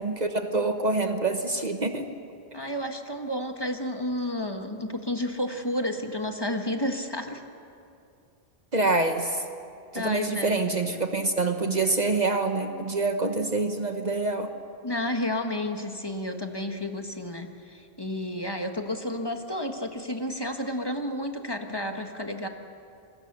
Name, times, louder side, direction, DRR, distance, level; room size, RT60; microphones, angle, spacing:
voice 1, 0.0-2.1 8.7-9.4 9.9-14.5, right 3 dB, 45° right, 6 dB, 1.1 m, -26 dB
voice 2, 2.5-7.4 9.9-10.6 14.8-22.5, left 1 dB, 25° left, 4 dB, 1.4 m, -31 dB
26.5 x 22.0 x 6.8 m, 2.5 s
omnidirectional pair, 1.1 m